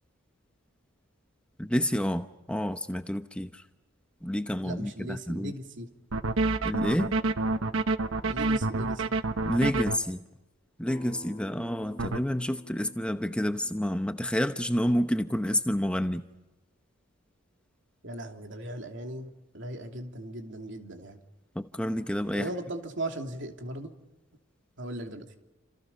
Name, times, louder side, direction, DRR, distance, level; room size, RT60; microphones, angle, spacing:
voice 1, 1.6-3.6 4.2-5.5 6.6-7.1 9.4-10.2 10.8-16.2 21.5-22.5, equal, 5° left, 0.9 m, -29 dB
voice 2, 4.6-5.9 8.3-9.1 18.0-21.2 22.3-23.9 24.8-25.4, right 1 dB, 65° right, 2.9 m, -38 dB
sound 1, 6.1-10.0 12.0-12.2, right 3 dB, 85° right, 1.0 m, -27 dB
Acoustic guitar, 10.9-16.1, left 1 dB, 30° left, 2.8 m, -49 dB
30.0 x 27.5 x 5.5 m
head